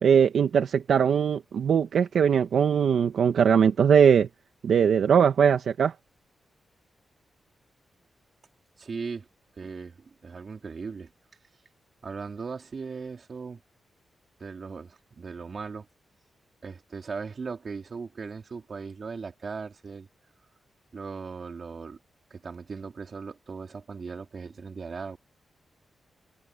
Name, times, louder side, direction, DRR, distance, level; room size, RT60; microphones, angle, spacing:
voice 1, 0.0-4.3 4.6-5.9, right 7 dB, 75° right, 1.3 m, -21 dB
voice 2, 8.8-9.3 9.6-11.1 12.0-13.6 14.4-15.9 16.6-20.1 20.9-22.0 22.3-25.2, right 5 dB, 45° right, 3.9 m, -38 dB
wide cardioid pair, 120°, 0 cm